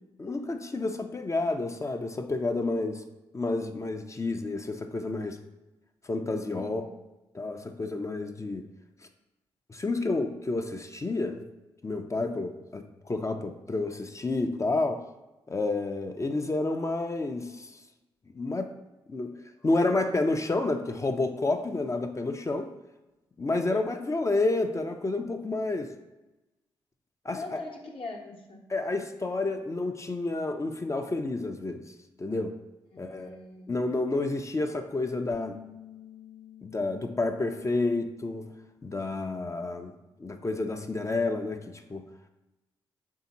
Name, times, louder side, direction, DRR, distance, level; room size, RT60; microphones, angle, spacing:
voice 1, 0.2-3.0 3.3-5.4 6.1-6.9 7.3-8.7 9.7-11.4 11.8-15.0 15.5-17.7 18.3-18.7 19.1-19.4 19.6-22.7 23.4-25.9 27.2-27.4 28.7-31.9 32.2-32.6 33.0-33.4 33.7-35.6 36.6-38.4 38.8-39.9 40.2-42.1, left 2 dB, 25° left, 5 dB, 0.4 m, -30 dB
voice 2, 6.5-6.9 23.7-23.8 27.3-28.6 32.9-33.9, left 3 dB, 55° left, 0 dB, 0.8 m, -42 dB
Bass guitar, 35.3-39.6 39.9-41.5, left 10 dB, 80° right, 1.0 m, -53 dB
3.4 x 2.7 x 4.0 m, 1.0 s
hypercardioid pair, 45°, 11 cm